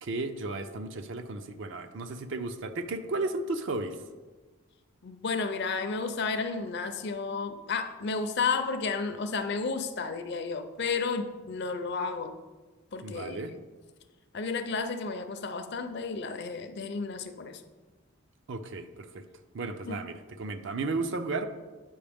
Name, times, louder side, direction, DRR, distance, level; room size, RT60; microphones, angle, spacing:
voice 1, 0.0-4.0 13.0-13.5 18.5-19.3 19.5-21.5, right 3 dB, 55° right, 9 dB, 0.5 m, -34 dB
voice 2, 5.0-12.3 12.9-13.6 14.3-17.6 19.9-20.0, left 4 dB, 50° left, 9 dB, 0.5 m, -32 dB
8.6 x 5.4 x 3.5 m, 1.3 s
head